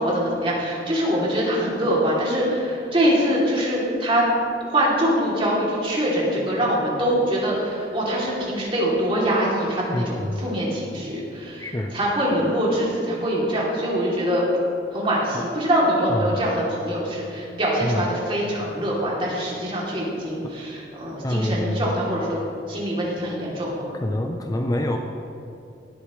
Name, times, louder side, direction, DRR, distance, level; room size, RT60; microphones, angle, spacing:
voice 1, 0.0-4.2 4.7-14.4 14.9-22.4 22.7-23.8, equal, 30° right, -5 dB, 2.9 m, -23 dB
voice 2, 9.9-10.6 11.6-11.9 15.3-15.4 16.1-16.4 17.8-18.1 20.4-20.5 21.2-22.0 24.0-25.0, left 1 dB, 20° left, 3 dB, 0.6 m, -26 dB
18.5 x 9.1 x 3.2 m, 2.7 s
head